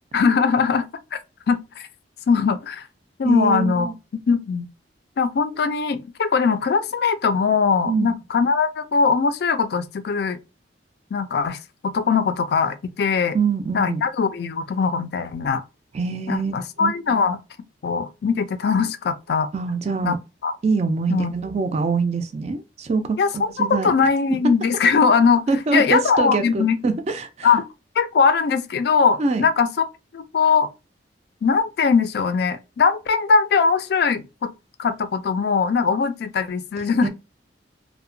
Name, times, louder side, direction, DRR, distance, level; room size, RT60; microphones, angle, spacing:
voice 1, 0.1-1.2 1.5-1.9 2.3-2.9 3.2-3.9 4.3-4.7 5.2-10.4 11.1-11.6 11.8-13.4 13.7-15.6 16.3-17.4 17.8-19.5 20.0-20.2 20.4-20.5 21.1-21.4 23.2-25.4 25.7-26.8 27.4-27.7 28.0-29.7 30.1-30.7 31.4-34.5 34.8-37.1, left 5 dB, 55° left, 0.3 m, -20 dB
voice 2, 3.2-4.0 7.9-8.1 13.3-14.0 15.9-16.5 16.8-16.9 19.5-20.2 20.6-23.9 25.5-27.5 29.2-29.4 36.8-37.1, right 4 dB, 35° right, 0.3 m, -24 dB
2.8 x 2.1 x 2.5 m
head